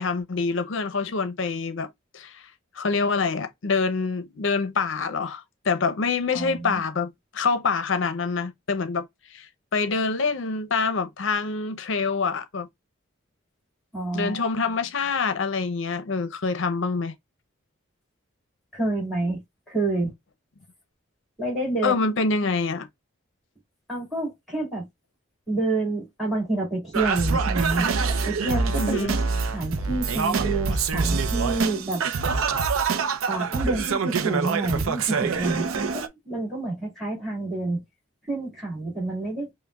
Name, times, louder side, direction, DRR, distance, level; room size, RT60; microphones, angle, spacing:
voice 1, 0.0-2.5 2.7-12.7 14.1-17.1 21.8-22.9 28.8-29.2, left 4 dB, 65° left, 0.6 m, -26 dB
voice 2, 6.3-6.8 13.9-14.5 18.7-19.4 19.7-20.1 21.4-22.1 23.9-24.9 25.5-27.9 28.2-29.2 29.5-32.0 33.3-37.8 38.3-39.5, right 2 dB, ahead, 2.1 m, -28 dB
Singing, 26.9-36.1, right 5 dB, 90° right, 0.5 m, -25 dB
5.5 x 2.1 x 2.3 m
head